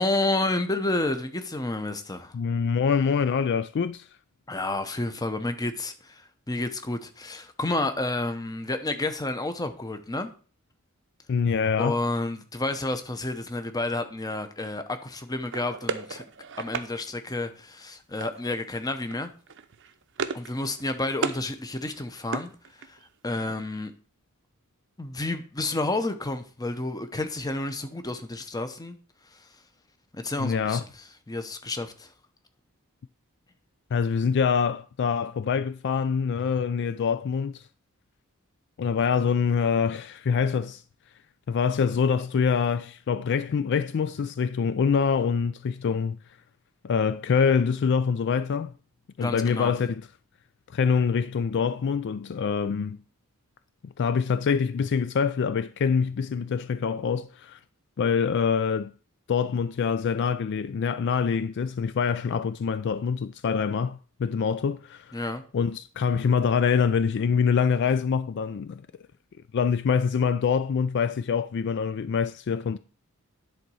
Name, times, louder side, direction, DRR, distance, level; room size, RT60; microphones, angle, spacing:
voice 1, 0.0-2.3 4.5-10.3 11.8-16.2 16.6-19.3 20.3-23.0 23.2-23.9 25.0-29.0 29.3-29.5 30.1-30.9 31.3-32.1 49.2-49.7 65.1-65.4, left 2 dB, 15° left, 0.8 m, -30 dB
voice 2, 2.3-4.1 11.3-12.0 30.4-30.8 33.9-37.6 38.8-40.8 41.5-46.2 46.8-48.7 49.2-50.0 50.7-53.0 53.8-57.6 58.0-58.9 59.3-65.1 65.5-68.8 69.5-72.8, left 6 dB, 50° left, 0.3 m, -25 dB
sound 1, 15.5-16.9 18.2-18.6 18.9-19.2 19.5-20.5 20.8-21.4 21.8-23.1, right 5 dB, 55° right, 0.7 m, -34 dB
10.5 x 4.0 x 6.2 m
head